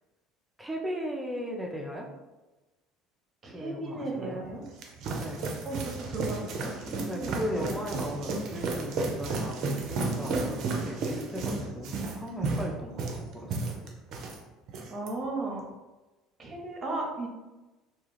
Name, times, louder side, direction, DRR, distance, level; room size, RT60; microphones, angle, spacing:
voice 1, 0.6-2.1 3.4-4.4 5.2-5.5 6.8-13.0 13.3-13.6, equal, 5° right, -1 dB, 0.5 m, -37 dB
voice 2, 3.4-4.6 5.6-7.7 14.9-15.7 16.4-17.3, right 2 dB, 35° right, -1 dB, 0.8 m, -36 dB
Running down stairs, 4.4-14.4 14.7-15.1, right 3 dB, 60° right, 0.5 m, -33 dB
2.4 x 2.3 x 3.2 m, 1.1 s
hypercardioid pair, 80°, 0 cm